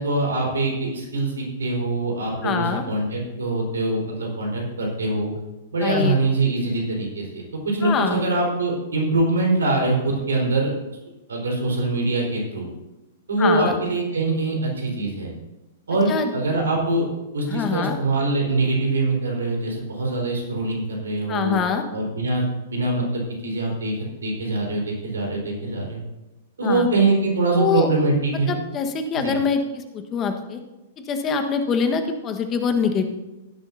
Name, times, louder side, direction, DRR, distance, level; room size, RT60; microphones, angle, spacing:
voice 1, 0.0-5.3 5.7-10.7 11.3-12.7 13.3-15.3 15.9-17.1 17.3-21.6 21.9-24.0 24.2-26.0 26.6-28.5 29.2-29.3, right 2 dB, 75° right, 0 dB, 4.3 m, -23 dB
voice 2, 2.4-2.8 5.8-6.2 7.8-8.2 13.4-13.8 16.1-16.3 17.5-18.0 21.3-21.8 26.6-26.9 27.6-27.9 28.5-30.6 31.1-33.1, left 6 dB, 30° left, 6 dB, 1.4 m, -24 dB
16.5 x 11.5 x 2.8 m, 1.0 s
figure-of-eight pair, 105°, 0 cm